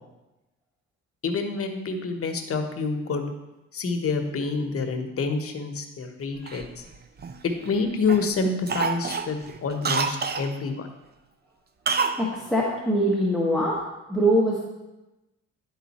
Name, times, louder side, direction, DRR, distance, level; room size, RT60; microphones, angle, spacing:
voice 1, 1.2-3.3 3.7-6.8 7.4-10.9, left 4 dB, 50° left, 5 dB, 1.1 m, -27 dB
Cough, 6.5-7.7 8.1-8.3 8.7-10.5 11.9-12.2 12.5-12.6, right 5 dB, 35° right, 0.5 m, -27 dB
voice 2, 12.2-13.8 14.1-14.6, equal, ahead, -5 dB, 1.2 m, -23 dB
10.0 x 3.9 x 4.2 m, 1.0 s
cardioid pair, 90°, 30 cm